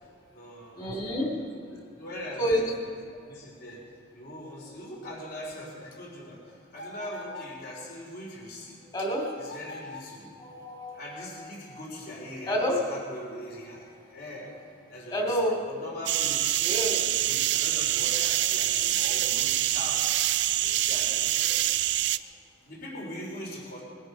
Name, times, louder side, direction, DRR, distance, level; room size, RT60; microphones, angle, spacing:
voice 1, 0.0-1.4 1.7-2.6 3.3-3.8 4.1-8.8 9.4-10.3 10.9-14.5 14.9-16.6 17.0-20.0 20.6-21.6 22.7-23.8, left 1 dB, 50° left, -3 dB, 3.6 m, -41 dB
voice 2, 0.8-1.3 2.4-2.6 8.9-9.2 10.4-11.4 12.5-12.8 15.1-15.6 16.6-17.0, equal, 20° left, 0 dB, 2.6 m, -28 dB
sound 1, 6.8-7.6 9.2-10.2, left 2 dB, 70° left, 3.4 m, -42 dB
sound 2, 16.1-22.2, right 13 dB, 60° right, 0.4 m, -26 dB
21.0 x 11.0 x 5.6 m, 2.2 s
head